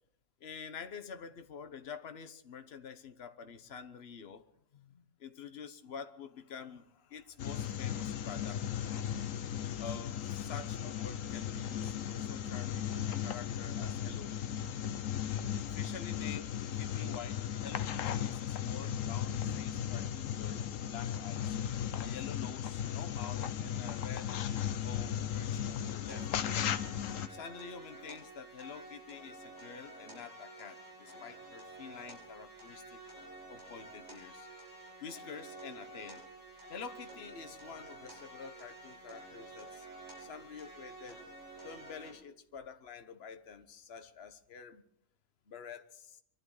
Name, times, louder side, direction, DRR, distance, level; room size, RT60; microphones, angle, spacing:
voice 1, 0.4-4.4 4.7-8.6 9.8-14.6 15.7-21.6 22.0-24.4 24.8-26.7 27.3-33.0 33.5-34.5 35.0-36.2 36.7-39.9 40.2-41.2 41.6-44.8 45.5-46.2, left 6 dB, 55° left, 9 dB, 1.3 m, -48 dB
sound 1, 7.4-27.3, left 9 dB, 85° left, 1.2 m, -36 dB
sound 2, 26.1-42.1, right 2 dB, 35° right, 7.9 m, -50 dB
24.5 x 12.0 x 4.9 m, 0.72 s
omnidirectional pair, 1.3 m